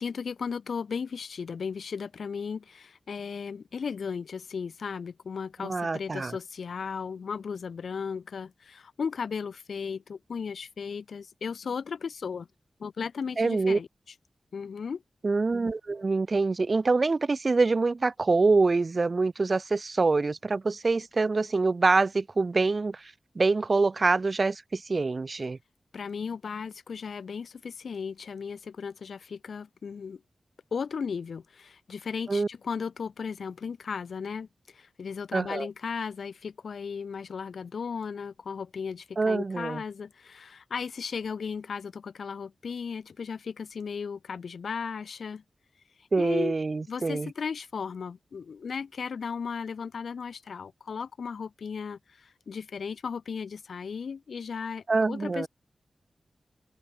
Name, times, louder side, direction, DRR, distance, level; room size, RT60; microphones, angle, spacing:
voice 1, 0.0-12.5 12.8-13.9 14.5-15.0 25.9-30.2 30.7-45.4 46.2-46.5 46.9-55.5, left 6 dB, 80° left, 2.4 m, -36 dB
voice 2, 5.6-6.4 13.4-13.8 15.2-25.6 32.3-32.5 35.3-35.7 39.2-39.8 46.1-47.3 54.9-55.5, right 3 dB, 40° right, 0.8 m, -25 dB
open air
wide cardioid pair, 130°, 0 cm